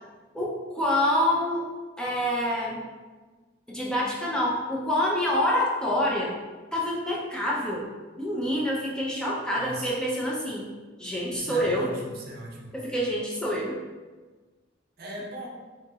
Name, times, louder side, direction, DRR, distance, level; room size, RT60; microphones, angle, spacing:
voice 1, 0.3-1.7 2.0-2.8 3.7-6.3 6.7-7.9 8.2-10.7 11.0-11.9 12.7-13.8, left 1 dB, 5° left, -4 dB, 0.4 m, -27 dB
voice 2, 9.6-9.9 11.3-12.8 15.0-15.5, right 1 dB, 50° right, -2 dB, 0.5 m, -38 dB
2.9 x 2.7 x 2.3 m, 1.3 s
head